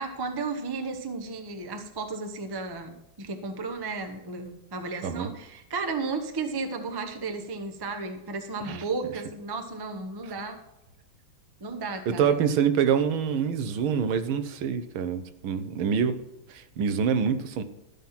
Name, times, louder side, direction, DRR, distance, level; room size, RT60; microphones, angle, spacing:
voice 1, 0.0-10.6 11.6-12.4, right 3 dB, 30° right, 6 dB, 0.4 m, -34 dB
voice 2, 12.1-16.2 16.5-17.6, right 7 dB, 80° right, 10 dB, 1.6 m, -26 dB
13.0 x 5.7 x 5.9 m, 0.91 s
omnidirectional pair, 2.3 m